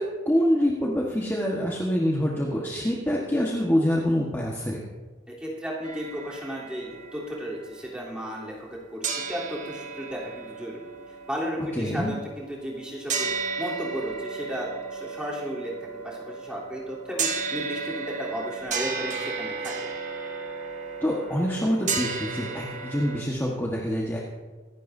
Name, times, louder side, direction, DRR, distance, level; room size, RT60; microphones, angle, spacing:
voice 1, 0.0-4.8 11.7-12.1 21.0-24.2, equal, 15° left, -3 dB, 1.3 m, -25 dB
voice 2, 5.3-10.8 11.3-19.7, equal, 5° right, -5 dB, 3.3 m, -34 dB
sound 1, 5.8-8.8 9.0-23.2, right 5 dB, 45° right, 1.5 m, -34 dB
24.5 x 11.5 x 2.7 m, 1.3 s
head